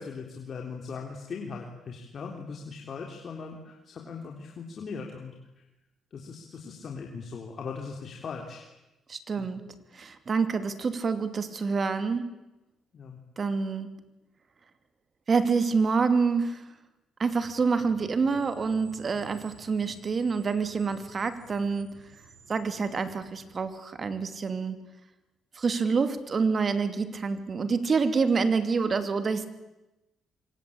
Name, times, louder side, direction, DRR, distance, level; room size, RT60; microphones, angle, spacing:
voice 1, 0.0-5.6 6.1-8.7 9.4-9.5 12.9-13.2, left 5 dB, 50° left, 1 dB, 3.6 m, -39 dB
voice 2, 9.1-9.7 9.9-12.4 13.4-14.0 15.3-16.7 17.2-22.0 22.5-24.8 25.5-29.4, right 5 dB, 40° right, 10 dB, 2.8 m, -27 dB
Screech, 17.8-23.6, right 4 dB, 85° right, 7.6 m, -54 dB
26.0 x 24.5 x 8.8 m, 0.99 s
cardioid pair, 90°, 0 cm